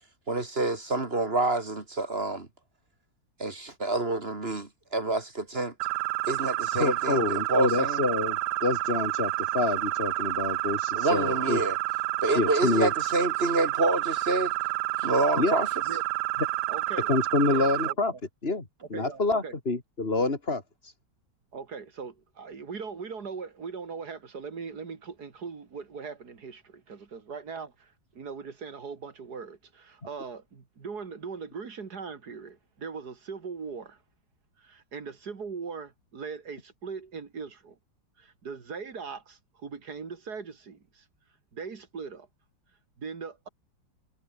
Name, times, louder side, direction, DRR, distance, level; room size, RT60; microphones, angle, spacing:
voice 1, 0.3-2.5 3.4-5.7 6.3-8.0 10.9-11.8 12.2-14.5 15.0-15.7, right 2 dB, 30° right, 3.5 m, -28 dB
sound 1, 5.8-17.9, right 15 dB, 75° right, 1.1 m, -29 dB
voice 2, 6.7-11.6 12.3-12.9 15.4-15.5 17.1-18.1 18.4-18.6 18.9-20.9, left 3 dB, 30° left, 3.2 m, -27 dB
voice 3, 16.7-17.1 17.5-17.9 18.9-19.5 21.5-34.0 34.6-37.8 38.2-41.0 41.5-42.3 43.0-43.5, right 5 dB, 60° right, 2.7 m, -40 dB
omnidirectional pair, 2.0 m